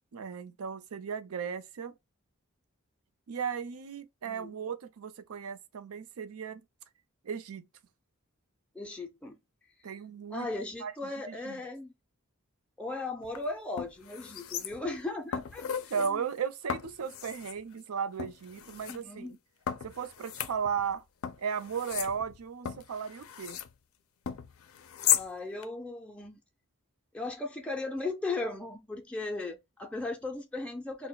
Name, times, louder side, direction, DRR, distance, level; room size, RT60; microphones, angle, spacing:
voice 1, 0.1-2.0 3.3-6.6 7.2-7.7 9.8-10.5 10.8-10.9 11.3-11.6 15.9-19.4 19.8-21.0 21.4-23.6, right 6 dB, 90° right, 0.5 m, -35 dB
voice 2, 4.2-4.6 8.7-9.4 9.8-9.9 10.3-11.9 12.8-16.2 18.9-19.4 25.1-26.4 27.1-31.1, left 2 dB, 5° left, 0.4 m, -37 dB
sound 1, 13.2-13.4 13.8-15.0 15.3-16.1 16.7-17.6 18.2-19.0 19.7-20.9 21.2-23.7 24.3-25.3 25.6-25.7, left 10 dB, 75° left, 0.4 m, -35 dB
2.2 x 2.1 x 3.8 m
head